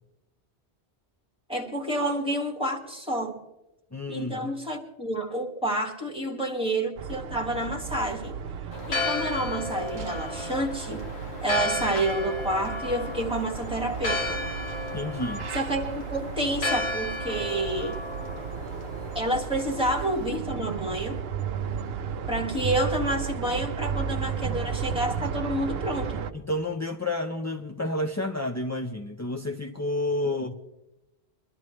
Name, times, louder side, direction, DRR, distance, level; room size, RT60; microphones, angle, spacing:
voice 1, 1.5-3.4 4.1-8.3 8.9-11.1 11.4-14.4 15.5-18.0 19.2-21.2 22.3-26.3, right 1 dB, 5° right, 1 dB, 1.8 m, -29 dB
voice 2, 3.9-4.5 14.9-15.5 26.3-30.5, left 1 dB, 25° left, 4 dB, 0.4 m, -30 dB
sound 1, 7.0-26.3, right 7 dB, 70° right, 0.9 m, -34 dB
Church bell, 8.7-20.3, left 3 dB, 75° left, 1.6 m, -34 dB
23.5 x 12.0 x 3.2 m, 0.96 s
omnidirectional pair, 1.1 m